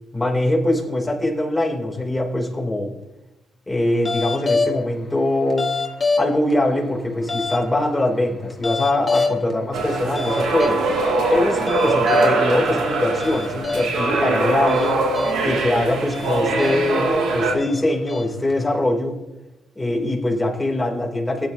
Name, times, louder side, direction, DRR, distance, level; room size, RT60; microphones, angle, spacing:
voice 1, 0.1-2.9 3.7-5.7 6.2-10.8 11.3-15.0 15.4-19.2 19.7-21.5, left 1 dB, 15° left, -1 dB, 3.4 m, -22 dB
sound 1, 4.1-4.8 5.5-6.5 7.3-7.7 8.5-9.5 10.2-10.8 11.5-12.5 13.2-13.9 14.5-15.5 16.1-16.9 17.5-18.5, left 4 dB, 35° left, 2.2 m, -25 dB
sound 2, 9.7-17.5, right 3 dB, 90° right, 2.6 m, -22 dB
16.5 x 10.5 x 2.9 m, 0.99 s
cardioid pair, 80°, 0 cm